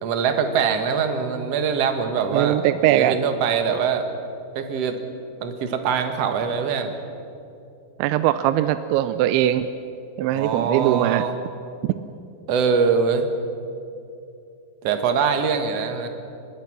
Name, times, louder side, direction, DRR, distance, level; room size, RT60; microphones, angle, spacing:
voice 1, 0.0-2.6 2.9-4.0 4.5-5.0 5.4-6.9 10.3-11.4 12.5-13.3 14.8-16.1, right 6 dB, 70° right, 6 dB, 1.5 m, -23 dB
voice 2, 2.3-3.2 8.0-9.7 10.2-11.2 11.8-11.9, right 13 dB, 90° right, 12 dB, 3.0 m, -20 dB
24.5 x 21.5 x 6.1 m, 2.7 s
omnidirectional pair, 5.2 m